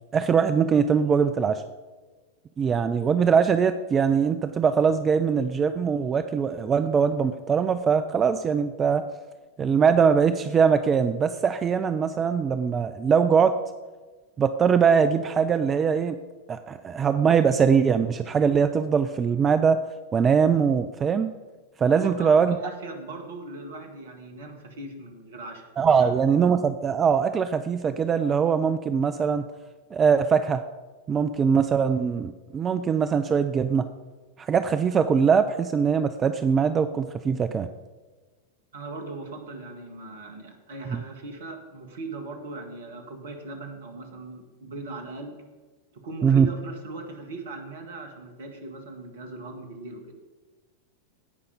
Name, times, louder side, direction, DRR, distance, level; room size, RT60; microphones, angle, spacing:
voice 1, 0.1-1.6 2.6-9.0 9.6-13.5 14.4-16.2 16.5-19.8 20.1-21.3 21.8-22.6 25.8-29.4 29.9-30.6 31.1-33.9 34.4-37.7 40.9-41.0 46.2-46.5, right 6 dB, 20° right, 10 dB, 0.4 m, -22 dB
voice 2, 21.9-25.6 26.0-26.1 38.7-45.4 45.9-50.1, right 2 dB, 60° right, 5 dB, 1.9 m, -39 dB
16.5 x 5.7 x 5.1 m, 1.3 s
figure-of-eight pair, 90°, 0 cm